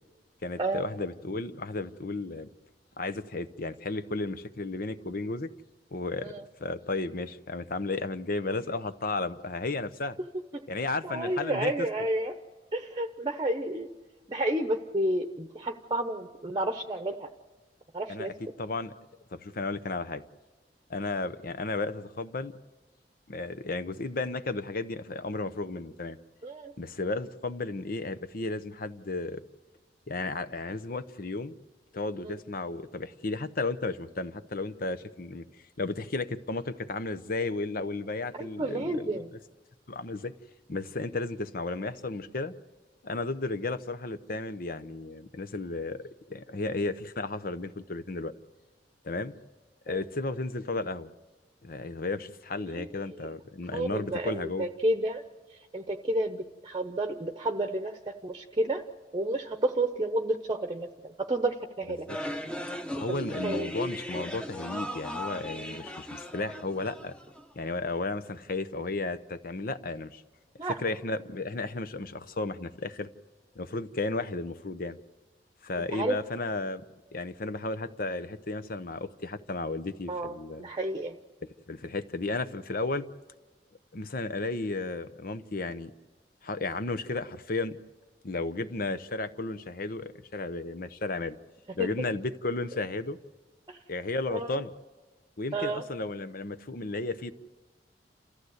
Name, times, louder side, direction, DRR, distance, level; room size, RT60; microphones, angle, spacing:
voice 1, 0.4-2.5 3.0-5.5 5.9-6.3 6.6-10.2 10.7-11.9 18.1-18.3 18.6-18.9 19.3-20.2 20.9-22.5 23.3-26.2 26.8-29.4 30.1-31.6 31.9-35.4 35.8-39.4 39.9-40.3 40.7-42.5 43.0-48.3 49.0-49.3 49.9-51.1 51.6-54.7 62.1-62.2 63.0-67.1 67.6-70.2 70.8-73.1 73.5-75.0 75.6-76.8 77.1-80.7 81.4-83.1 83.9-85.9 86.4-87.8 88.2-91.4 91.7-93.2 93.9-94.7 95.4-97.3, left 3 dB, 55° left, 12 dB, 0.9 m, -33 dB
voice 2, 11.0-12.4 12.7-13.9 14.3-17.3 17.9-18.3 26.4-26.7 32.2-32.4 38.4-39.3 49.9-50.0 52.7-52.9 53.7-55.2 55.7-58.8 59.1-62.1 63.1-63.7 70.6-70.7 75.9-76.2 80.1-81.2 91.8-91.9 93.7-93.8 94.3-94.6 95.5-95.8, right 1 dB, 25° right, 5 dB, 0.9 m, -31 dB
sound 1, 62.1-67.5, equal, 5° left, 1.1 m, -37 dB
28.5 x 14.5 x 8.0 m, 1.2 s
head